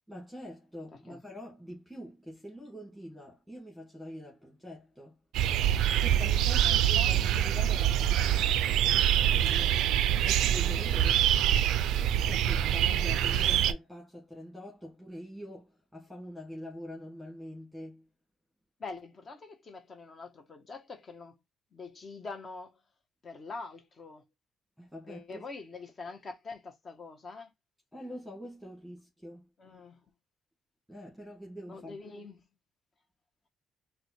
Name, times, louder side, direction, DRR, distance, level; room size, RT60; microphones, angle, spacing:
voice 1, 0.1-5.2 6.0-9.8 10.2-11.3 12.2-18.0 24.8-25.4 27.9-29.5 30.9-32.0, equal, 5° left, 1.4 m, -45 dB
sound 1, 5.3-13.7, right 11 dB, 80° right, 0.3 m, -25 dB
voice 2, 6.6-7.2 18.8-21.4 21.7-22.7 23.2-24.2 25.1-27.5 29.6-30.0 31.7-32.4, left 4 dB, 40° left, 0.8 m, -44 dB
4.0 x 2.2 x 2.9 m
cardioid pair, 90°, 0 cm